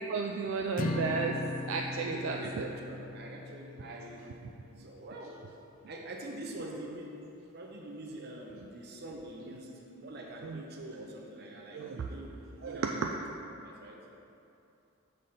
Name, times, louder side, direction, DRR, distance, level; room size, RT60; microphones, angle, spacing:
voice 1, 0.1-1.4 1.7-2.7 10.4-10.6 11.7-12.0 12.6-13.1, right 5 dB, 70° right, 2 dB, 0.3 m, -33 dB
sound 1, 0.8-5.1, left 2 dB, 40° left, 0.3 m, -39 dB
voice 2, 2.0-4.4 4.8-5.4 5.9-7.2 7.5-12.3 12.6-13.1 13.6-14.0, right 1 dB, 50° right, 0 dB, 0.7 m, -44 dB
5.6 x 4.1 x 5.0 m, 2.7 s
head